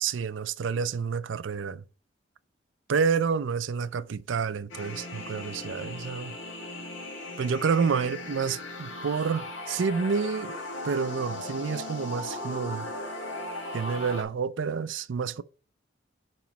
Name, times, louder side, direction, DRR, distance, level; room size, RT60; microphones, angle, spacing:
voice 1, 0.0-1.8 2.9-6.4 7.4-10.5 10.8-12.9 13.7-15.4, right 5 dB, 80° right, 0.4 m, -29 dB
sound 1, 4.7-14.2, left 1 dB, 85° left, 1.7 m, -38 dB
7.1 x 3.0 x 5.9 m
head